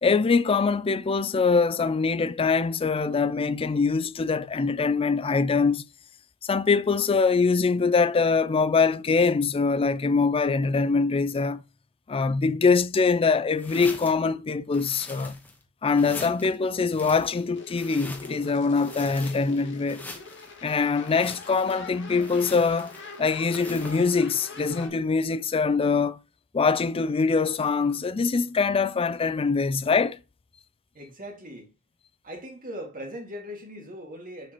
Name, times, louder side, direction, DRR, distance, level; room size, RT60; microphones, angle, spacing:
voice 1, 0.0-5.8 6.4-11.6 12.1-15.4 15.8-20.0 20.6-22.9 23.2-26.2 26.5-30.2, left 4 dB, 25° left, 0.4 m, -23 dB
sound 1, 13.6-14.3 14.7-15.6 15.9-16.5 16.9-18.5 18.8-19.6 19.9-20.5 21.0-21.8 22.2-23.1 23.5-24.1, left 2 dB, 10° left, 1.2 m, -43 dB
sound 2, 17.5-24.9, left 4 dB, 55° left, 2.0 m, -43 dB
voice 2, 30.9-31.7 32.2-34.5, equal, 40° right, 2.2 m, -39 dB
6.5 x 5.8 x 3.0 m
head